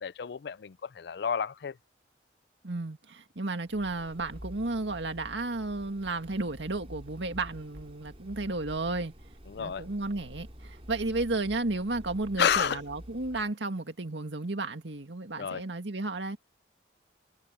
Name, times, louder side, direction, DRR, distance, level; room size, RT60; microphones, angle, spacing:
voice 1, 0.0-1.7 9.5-9.8 12.4-12.8 15.4-15.6, left 7 dB, 60° left, 0.4 m, -30 dB
voice 2, 2.6-9.1 9.6-16.4, right 2 dB, 80° right, 2.0 m, -33 dB
sound 1, 3.7-13.5, equal, 35° right, 5.7 m, -48 dB
head